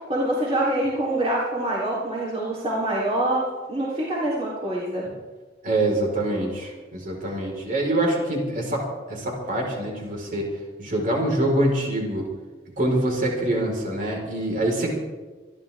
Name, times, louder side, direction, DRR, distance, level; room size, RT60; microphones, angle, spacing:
voice 1, 0.1-3.4 3.7-5.1, right 1 dB, 35° right, -7 dB, 3.5 m, -25 dB
voice 2, 5.6-10.5 10.8-12.2 12.8-14.9, right 1 dB, 50° right, -1 dB, 4.5 m, -25 dB
26.5 x 12.0 x 3.6 m, 1.3 s
head